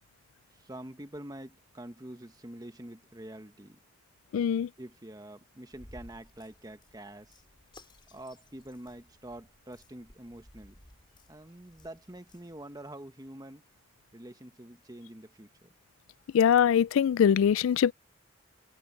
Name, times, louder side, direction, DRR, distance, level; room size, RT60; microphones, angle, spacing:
voice 1, 0.5-3.8 4.8-7.4 8.1-10.8 11.3-13.6 14.1-15.7, right 1 dB, 20° right, 1.1 m, -46 dB
voice 2, 4.3-4.7 16.3-17.9, left 8 dB, 85° left, 0.3 m, -22 dB
sound 1, 5.7-12.9, left 1 dB, 25° left, 4.4 m, -57 dB
head